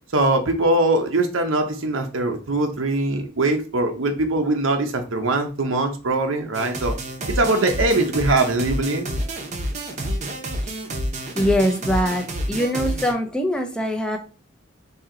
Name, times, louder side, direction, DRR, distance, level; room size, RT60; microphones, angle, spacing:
voice 1, 0.1-6.9 7.3-9.1, right 2 dB, 80° right, 4 dB, 0.7 m, -22 dB
sound 1, 6.5-13.1, equal, 35° right, 0.8 m, -28 dB
voice 2, 11.4-14.2, equal, 5° left, 2 dB, 0.6 m, -23 dB
4.4 x 2.8 x 3.7 m, 0.34 s
head